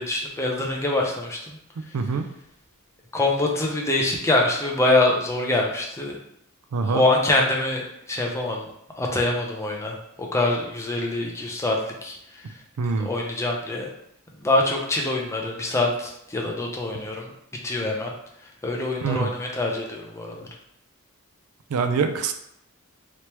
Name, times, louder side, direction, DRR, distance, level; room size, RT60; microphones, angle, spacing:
voice 1, 0.0-1.6 3.1-6.1 6.9-8.7 9.0-11.8 12.0-12.2 13.0-13.9 14.4-17.3 17.6-18.1 18.6-20.5, left 2 dB, 15° left, -1 dB, 0.5 m, -24 dB
voice 2, 1.9-2.3 6.7-7.0 12.8-13.1 19.0-19.3 21.7-22.3, right 4 dB, 85° right, 7 dB, 0.4 m, -24 dB
3.3 x 2.9 x 2.9 m, 0.76 s
head